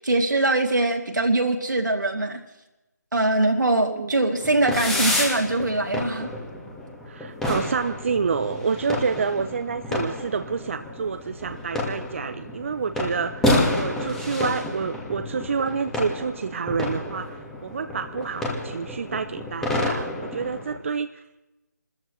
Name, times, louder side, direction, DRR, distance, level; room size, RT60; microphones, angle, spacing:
voice 1, 0.0-2.4 3.1-6.3, right 2 dB, 85° right, 3 dB, 2.6 m, -22 dB
voice 2, 3.7-4.1 7.1-13.5 13.7-21.1, right 5 dB, 45° right, 9 dB, 0.6 m, -28 dB
sound 1, 4.4-20.8, left 1 dB, 5° left, 1.5 m, -29 dB
29.0 x 14.0 x 3.1 m, 0.99 s
figure-of-eight pair, 160°, 10 cm